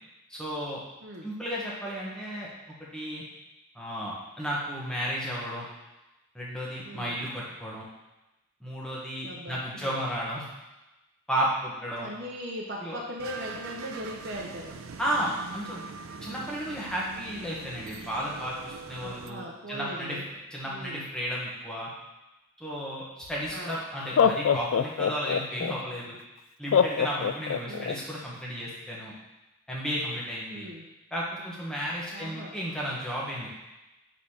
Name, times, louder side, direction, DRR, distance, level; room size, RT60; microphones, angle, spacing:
voice 1, 0.3-0.8 1.2-2.5 2.9-3.2 3.7-5.7 6.3-7.8 8.6-10.5 11.3-12.1 12.8-13.0 15.0-15.8 16.2-20.2 20.5-21.9 22.6-26.2 26.6-29.1 29.7-30.7 31.1-33.5, equal, 5° left, -6 dB, 1.4 m, -33 dB
voice 2, 6.8-7.2 9.2-10.0 12.0-14.7 19.0-20.2 20.7-21.0 23.5-23.8 27.7-28.0 30.5-30.9 32.1-32.5, equal, 55° right, -3 dB, 0.8 m, -39 dB
sound 1, 13.2-19.3, right 4 dB, 75° right, 0.4 m, -42 dB
Laughter, 23.3-23.4 24.0-25.7 26.7-27.9, left 7 dB, 70° left, 0.3 m, -23 dB
5.0 x 4.1 x 5.7 m, 1.0 s
head